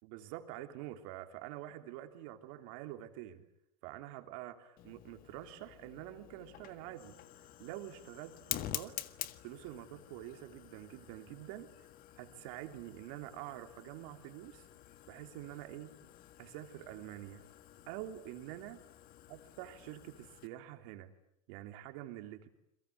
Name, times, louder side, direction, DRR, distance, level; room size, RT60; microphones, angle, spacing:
voice 1, 0.0-3.4 3.8-7.2 7.6-8.9 9.4-11.7 12.2-14.6 15.1-15.9 16.4-17.4 17.9-18.8 19.3-21.1 21.5-22.5, right 13 dB, 70° right, 7 dB, 3.2 m, -47 dB
Fire, 4.8-20.5, left 13 dB, 50° left, 1.7 m, -48 dB
30.0 x 23.5 x 8.6 m, 0.77 s
supercardioid pair, 110°, 19 cm